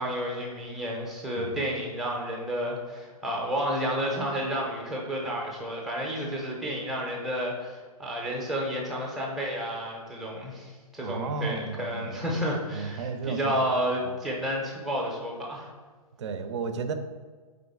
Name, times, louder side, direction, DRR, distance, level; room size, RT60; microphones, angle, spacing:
voice 1, 0.0-15.7, equal, ahead, -2 dB, 0.6 m, -31 dB
voice 2, 11.0-12.3 12.7-13.6 14.0-14.1 16.2-16.9, right 4 dB, 50° right, 8 dB, 0.5 m, -33 dB
3.7 x 3.7 x 3.5 m, 1.5 s
figure-of-eight pair, 120°, 19 cm